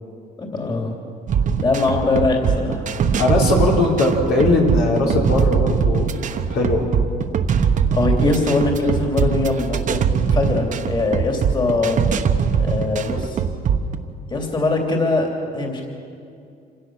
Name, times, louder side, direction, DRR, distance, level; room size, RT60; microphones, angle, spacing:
voice 1, 0.4-0.9 1.6-2.8 7.9-10.0 10.3-12.0 12.6-13.4 14.3-15.9, left 3 dB, 25° left, 1 dB, 3.1 m, -21 dB
sound 1, 1.3-14.0, right 6 dB, 50° right, 1.1 m, -21 dB
voice 2, 3.2-6.1 6.5-6.9, left 2 dB, 80° left, -2 dB, 4.0 m, -19 dB
26.5 x 16.5 x 6.4 m, 2.4 s
cardioid pair, 110°, 17 cm